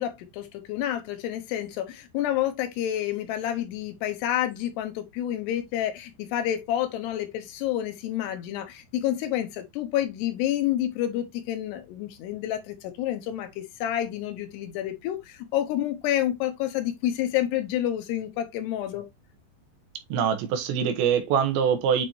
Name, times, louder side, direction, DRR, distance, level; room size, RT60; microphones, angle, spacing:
voice 1, 0.0-19.1, left 12 dB, 75° left, 3.0 m, -29 dB
voice 2, 20.1-22.1, right 7 dB, 85° right, 3.4 m, -24 dB
8.8 x 4.0 x 2.9 m
omnidirectional pair, 5.0 m